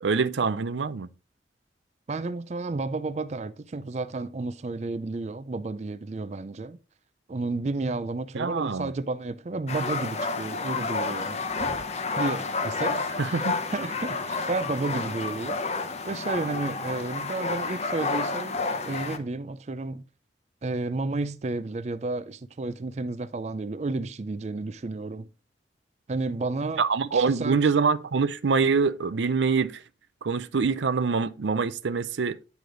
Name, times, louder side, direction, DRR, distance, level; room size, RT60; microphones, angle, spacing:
voice 1, 0.0-1.1 8.3-8.9 13.2-13.6 26.8-29.8 30.2-32.5, right 5 dB, 90° right, 0.5 m, -25 dB
voice 2, 2.1-6.8 7.3-11.7 12.2-18.6 18.8-20.0 20.6-25.3 26.1-26.9 27.1-27.7, right 3 dB, 40° right, 0.4 m, -32 dB
sound 1, 9.7-19.2, left 3 dB, 35° left, 0.8 m, -30 dB
9.5 x 5.0 x 3.9 m
head